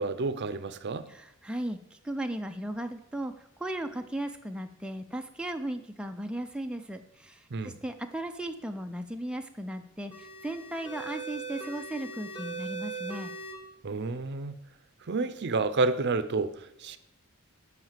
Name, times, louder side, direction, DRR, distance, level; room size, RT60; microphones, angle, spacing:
voice 1, 0.0-1.1 7.5-7.8 13.8-14.6 15.1-17.0, right 3 dB, 55° right, 0.6 m, -30 dB
voice 2, 1.1-13.3, right 1 dB, 5° right, 0.4 m, -36 dB
sound 1, 10.1-13.5, right 3 dB, 25° left, 1.6 m, -40 dB
7.8 x 5.8 x 7.3 m
head